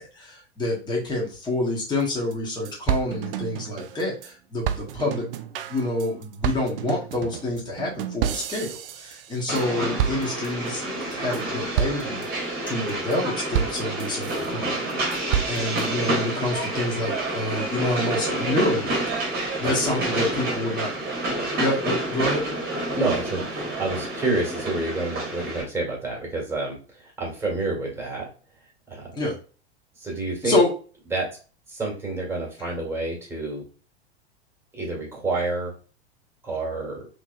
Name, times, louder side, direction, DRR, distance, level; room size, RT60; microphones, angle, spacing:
voice 1, 0.0-5.3 5.7-10.8 11.1-12.2 12.7-15.1 15.5-18.9 19.3-20.9 21.5-22.4 29.1-29.3 30.4-30.7, left 2 dB, 15° left, -5 dB, 1.4 m, -27 dB
sound 1, 2.0-2.1 2.3-2.4 2.6-4.3 4.6-9.7 10.0-10.7 11.1-11.4 11.8-12.3 12.7-13.2 13.5-14.5 14.9-15.9, right 10 dB, 55° right, 0.5 m, -30 dB
Train, 9.5-25.6, right 1 dB, 30° right, 1.5 m, -28 dB
voice 2, 22.9-28.3 28.9-29.2 30.0-30.6 31.1-31.3 31.7-33.6 34.7-35.7 36.4-37.1, right 2 dB, 5° right, -2 dB, 1.8 m, -29 dB
3.6 x 3.2 x 2.5 m, 0.37 s
figure-of-eight pair, 90°, 33 cm